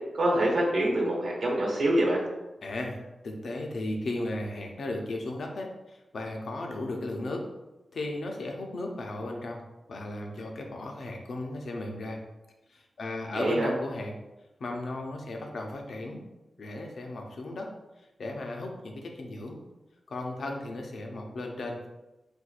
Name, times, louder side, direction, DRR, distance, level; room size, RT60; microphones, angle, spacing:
voice 1, 0.1-2.2 13.3-13.7, right 1 dB, 65° right, -2 dB, 1.0 m, -25 dB
voice 2, 2.6-7.5 7.9-9.6 9.9-12.2 12.7-14.1 14.6-16.2 16.6-17.7 18.2-19.6 20.1-21.9, left 2 dB, 70° left, 2 dB, 0.5 m, -35 dB
4.2 x 2.2 x 2.4 m, 1.0 s
wide cardioid pair, 120°, 0 cm